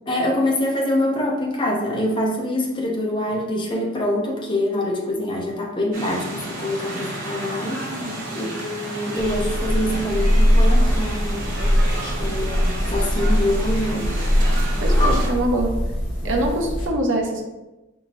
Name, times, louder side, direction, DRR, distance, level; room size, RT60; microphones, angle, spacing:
voice 1, 0.1-7.8 8.3-11.8 12.2-14.1 15.0-15.1 16.2-16.3, left 1 dB, 25° left, -1 dB, 0.6 m, -25 dB
sound 1, 5.9-15.3, right 1 dB, 45° right, 1.0 m, -31 dB
voice 2, 7.9-8.2 14.8-15.8 16.2-17.4, right 1 dB, 65° right, 1 dB, 0.7 m, -24 dB
sound 2, 9.2-16.9, equal, 65° left, 1.3 m, -21 dB
4.5 x 2.7 x 2.9 m, 1.0 s
head